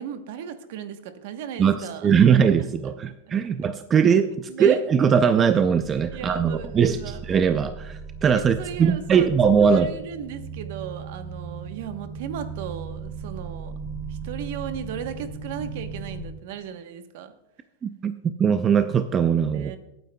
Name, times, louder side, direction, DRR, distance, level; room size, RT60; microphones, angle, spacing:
voice 1, 0.0-2.4 4.5-4.8 6.1-7.2 8.3-9.3 9.6-13.7 14.1-17.3 19.5-19.8, right 8 dB, 60° right, 9 dB, 0.9 m, -36 dB
voice 2, 1.6-9.9 17.8-19.7, right 7 dB, 20° right, 9 dB, 0.4 m, -20 dB
sound 1, 5.8-16.2, right 5 dB, 35° left, 1.1 m, -37 dB
24.5 x 9.1 x 2.2 m, 0.91 s
supercardioid pair, 170°, 0 cm